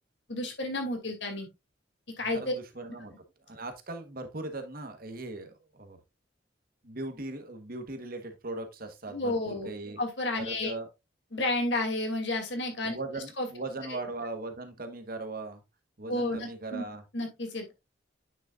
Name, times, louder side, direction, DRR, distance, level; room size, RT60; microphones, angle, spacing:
voice 1, 0.3-1.5 2.2-2.5 9.1-9.7 10.0-10.7 11.3-13.0 13.4-13.5 16.1-16.8 17.1-17.7, left 2 dB, 65° left, 4 dB, 2.6 m, -31 dB
voice 2, 2.3-3.1 3.5-6.0 6.8-10.0 10.4-10.9 12.9-15.6 16.0-17.0, right 2 dB, 50° right, 7 dB, 1.3 m, -39 dB
9.1 x 6.5 x 2.4 m, 0.23 s
head